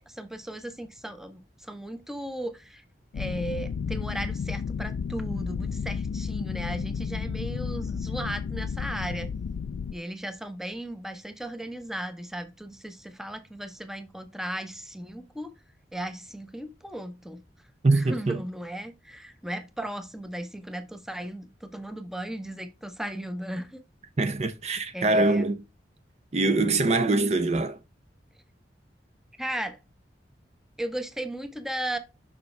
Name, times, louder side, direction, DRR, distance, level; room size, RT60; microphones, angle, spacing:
voice 1, 0.1-2.8 3.1-9.3 9.9-15.5 15.9-17.4 17.9-23.8 24.9-25.5 29.4-29.8 30.8-32.0, right 1 dB, ahead, 0.8 m, -36 dB
sound 1, 3.1-9.9, left 6 dB, 80° left, 0.3 m, -32 dB
voice 2, 17.8-18.4 24.2-25.6 26.3-27.8, right 2 dB, 35° right, 0.6 m, -23 dB
6.6 x 5.8 x 3.2 m
head